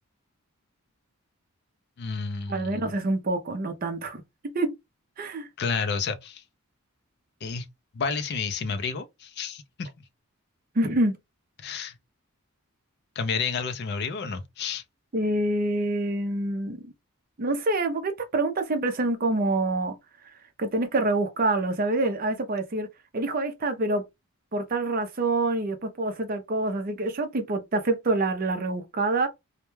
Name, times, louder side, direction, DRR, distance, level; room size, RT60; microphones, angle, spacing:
voice 1, 2.0-2.9 5.6-6.4 7.4-7.7 7.9-9.9 11.6-12.0 13.2-14.8, left 5 dB, 50° left, 0.4 m, -30 dB
voice 2, 2.5-4.8 5.2-5.5 10.8-11.2 15.1-16.9 17.4-20.0 20.6-22.9 23.1-24.0 24.5-29.3, right 2 dB, 40° right, 0.5 m, -26 dB
2.2 x 2.1 x 3.0 m
head